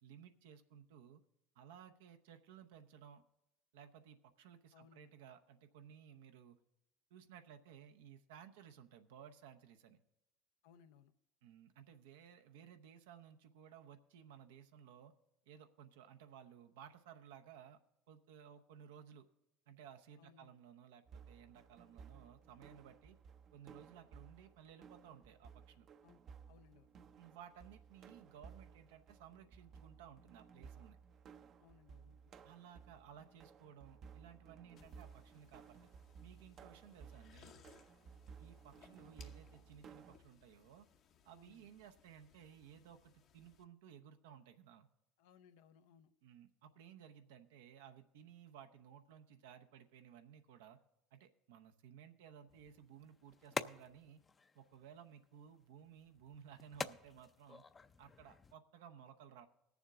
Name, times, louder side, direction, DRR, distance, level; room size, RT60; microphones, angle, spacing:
voice 1, 0.0-1.2 1.5-3.2 3.7-6.6 7.1-10.0 11.4-15.1 15.5-17.8 18.1-19.3 19.7-23.2 23.5-25.9 27.2-31.0 32.4-35.8 36.2-37.6 38.4-40.9 41.2-44.9 46.2-50.8 51.1-54.2 54.5-57.6 58.0-59.5, right 8 dB, 90° right, 8 dB, 0.7 m, -58 dB
voice 2, 4.7-5.1 10.6-11.1 20.2-20.5 26.0-26.2 26.5-26.9 31.6-32.3 41.3-41.7 45.2-46.1, left 7 dB, 85° left, 10 dB, 0.6 m, -65 dB
sound 1, 21.1-40.2, right 6 dB, 50° right, 0.6 m, -58 dB
sound 2, 34.8-43.6, left 7 dB, 55° left, 0.8 m, -67 dB
sound 3, 52.5-58.5, left 4 dB, 25° left, 0.5 m, -48 dB
19.5 x 7.1 x 3.6 m, 0.86 s
supercardioid pair, 95°, 0 cm